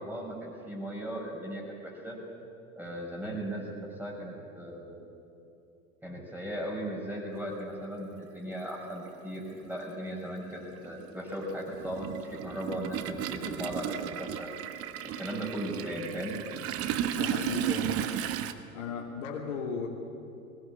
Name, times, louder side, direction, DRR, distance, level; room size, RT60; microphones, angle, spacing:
voice 1, 0.0-2.2 2.8-5.0 6.0-14.5 15.2-16.3, right 1 dB, 5° right, -2 dB, 5.8 m, -37 dB
Toilet flush, 8.0-8.1 9.4-9.6 9.9-18.5, right 10 dB, 30° right, 1.2 m, -34 dB
voice 2, 17.1-18.0 18.7-19.9, left 6 dB, 55° left, -1 dB, 2.9 m, -36 dB
21.0 x 18.0 x 8.4 m, 2.8 s
figure-of-eight pair, 90°, 43 cm